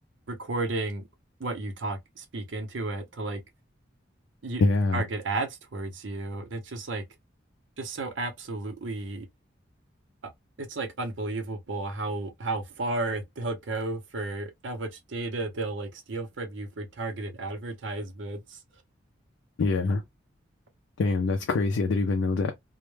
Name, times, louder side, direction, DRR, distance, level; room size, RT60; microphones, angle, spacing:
voice 1, 0.3-1.1 1.4-3.4 4.4-4.6 4.9-7.0 7.8-9.3 10.6-18.6, right 2 dB, 75° right, 0.6 m, -33 dB
voice 2, 4.6-5.0 19.6-20.0 21.0-22.5, left 3 dB, 80° left, 0.4 m, -24 dB
2.1 x 2.1 x 3.1 m
head